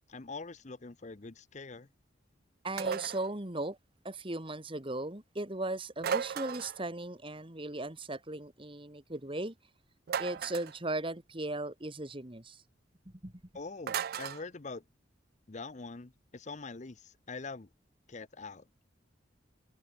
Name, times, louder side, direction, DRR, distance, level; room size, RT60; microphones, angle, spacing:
voice 1, 0.1-1.9 13.5-14.8 15.5-17.7 18.1-18.6, left 3 dB, 40° left, 0.8 m, -44 dB
voice 2, 2.6-3.8 4.0-9.5 10.2-12.6 13.1-13.3, right 2 dB, 25° right, 2.2 m, -37 dB
sound 1, 2.8-3.3 6.0-6.8 10.1-10.8 13.9-14.4, right 7 dB, 50° right, 0.3 m, -35 dB
head